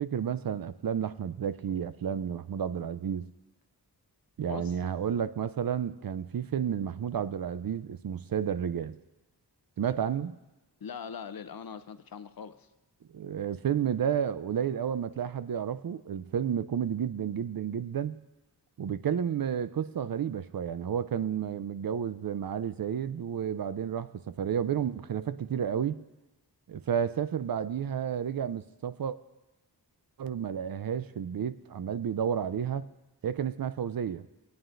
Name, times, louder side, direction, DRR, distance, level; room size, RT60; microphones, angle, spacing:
voice 1, 0.0-3.3 4.4-9.0 9.8-10.4 13.1-18.2 18.8-26.0 26.7-29.2 30.2-32.9 33.2-34.2, right 8 dB, 60° right, 14 dB, 0.5 m, -31 dB
voice 2, 4.5-4.8 10.8-12.7, left 7 dB, 60° left, 11 dB, 0.6 m, -41 dB
20.5 x 9.2 x 2.5 m, 1.1 s
wide cardioid pair, 85°, 40 cm